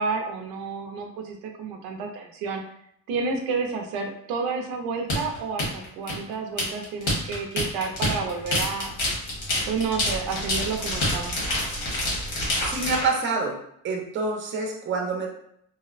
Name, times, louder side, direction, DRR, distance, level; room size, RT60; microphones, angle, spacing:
voice 1, 0.0-2.6 3.1-8.9 9.7-11.3, right 4 dB, 85° right, 3 dB, 0.5 m, -30 dB
sound 1, 5.1-13.1, left 1 dB, 85° left, 1.2 m, -27 dB
voice 2, 12.6-13.5 13.8-15.3, right 4 dB, 35° right, 0 dB, 0.5 m, -27 dB
2.6 x 2.0 x 2.4 m, 0.71 s
cardioid pair, 125°, 35 cm